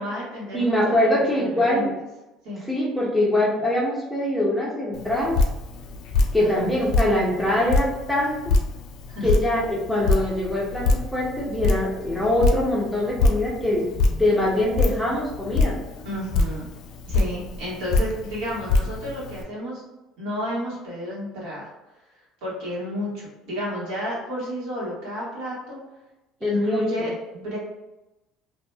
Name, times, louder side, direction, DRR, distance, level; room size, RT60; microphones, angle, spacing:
voice 1, 0.0-1.9 2.4-2.6 6.4-6.7 9.1-9.3 16.0-16.7 17.1-19.8 20.2-21.7 22.4-25.8 26.4-27.6, equal, 75° right, -6 dB, 1.5 m, -31 dB
voice 2, 0.5-1.9 2.6-5.4 6.3-8.4 9.2-15.8 26.4-27.1, left 1 dB, ahead, -4 dB, 0.5 m, -23 dB
Drip, 4.9-19.4, left 3 dB, 60° left, 0.4 m, -25 dB
2.9 x 2.6 x 2.2 m, 1.0 s
cardioid pair, 155°, 0 cm